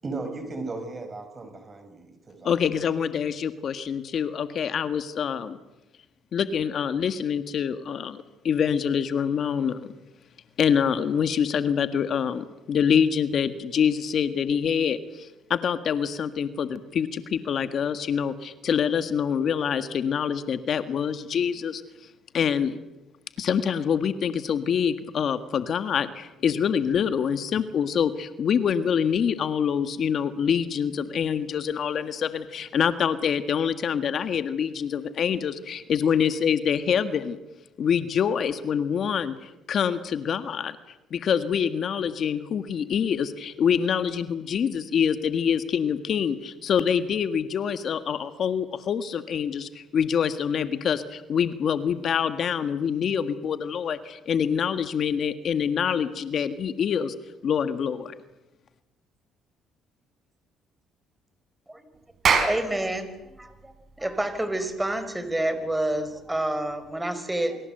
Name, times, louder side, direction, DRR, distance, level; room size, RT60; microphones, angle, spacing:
voice 1, 0.0-2.5, right 3 dB, 30° right, 7 dB, 7.2 m, -36 dB
voice 2, 2.4-5.6 6.3-9.9 10.6-21.8 22.3-22.8 23.4-37.4 37.8-40.8 41.1-57.1 57.4-58.1, left 7 dB, 55° left, 10 dB, 1.7 m, -25 dB
Clapping, 62.0-66.9, right 6 dB, 50° right, 5.1 m, -29 dB
voice 3, 62.3-63.1 63.4-63.7 64.0-67.6, right 1 dB, 10° right, 10 dB, 4.9 m, -28 dB
28.0 x 24.0 x 8.0 m, 0.98 s
cardioid pair, 90°, 0 cm